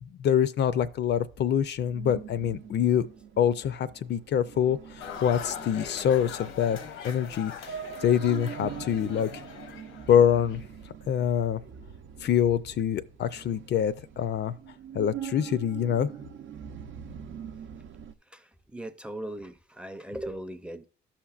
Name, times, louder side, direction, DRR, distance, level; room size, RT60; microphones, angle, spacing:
voice 1, 0.0-3.1 3.4-6.8 7.0-7.8 8.0-9.4 10.1-10.6 11.1-11.6 12.2-14.5 14.9-16.1, left 9 dB, 60° left, 0.5 m, -25 dB
sound 1, 0.9-18.1, right 8 dB, 75° right, 0.6 m, -44 dB
sound 2, 5.0-10.6, left 7 dB, 85° left, 0.8 m, -41 dB
voice 2, 18.3-20.9, right 1 dB, 5° right, 0.5 m, -39 dB
13.5 x 5.8 x 2.4 m
cardioid pair, 90°, 20 cm